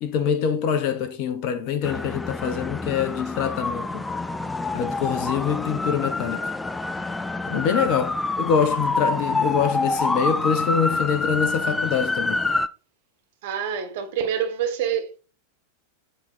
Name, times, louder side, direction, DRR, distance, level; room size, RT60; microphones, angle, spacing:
voice 1, 0.0-4.1 4.7-6.5 7.5-12.4, left 7 dB, 40° left, 0.9 m, -25 dB
sound 1, 1.8-12.7, left 2 dB, 10° left, 0.4 m, -27 dB
voice 2, 13.4-15.2, right 8 dB, 50° right, 1.4 m, -26 dB
7.6 x 3.9 x 4.3 m
figure-of-eight pair, 90°, 0 cm